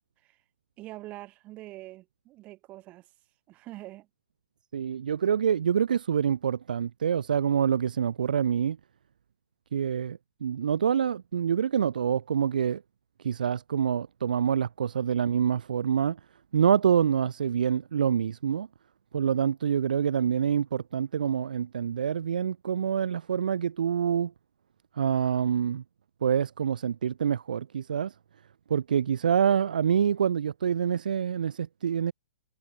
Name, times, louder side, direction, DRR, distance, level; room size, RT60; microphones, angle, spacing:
voice 1, 0.8-3.1 3.5-4.1, right 17 dB, 30° right, 6.2 m, -44 dB
voice 2, 4.7-8.8 9.7-12.8 13.2-16.2 16.5-18.7 19.1-24.3 25.0-25.8 26.2-28.1 28.7-32.1, right 8 dB, 85° right, 0.4 m, -26 dB
hypercardioid pair, 135°, 4 cm